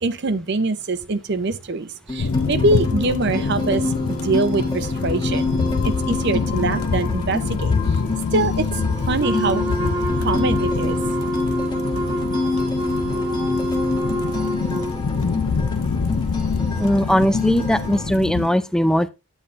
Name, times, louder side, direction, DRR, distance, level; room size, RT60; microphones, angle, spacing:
voice 1, 0.0-5.5 5.8-7.8 8.3-8.7 9.1-9.6 10.2-11.0, right 3 dB, 50° right, 0.6 m, -23 dB
sound 1, 2.1-18.1, left 3 dB, 20° left, 1.3 m, -27 dB
sound 2, 2.2-18.5, left 5 dB, 80° left, 0.6 m, -26 dB
Wind instrument woodwind instrument, 9.2-15.0, equal, 20° right, 1.0 m, -26 dB
voice 2, 16.8-19.1, equal, 5° left, 0.4 m, -19 dB
9.8 x 8.7 x 2.5 m
head